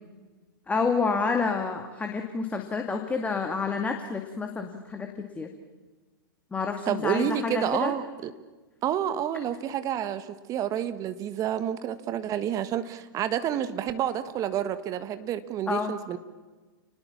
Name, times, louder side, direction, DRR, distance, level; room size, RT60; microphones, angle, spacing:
voice 1, 0.7-5.5 6.5-7.9 15.7-15.9, left 4 dB, 10° left, 4 dB, 2.3 m, -29 dB
voice 2, 6.9-8.3 8.8-16.2, right 10 dB, 30° right, 11 dB, 1.6 m, -29 dB
30.0 x 20.5 x 7.3 m, 1.3 s
figure-of-eight pair, 110°, 12 cm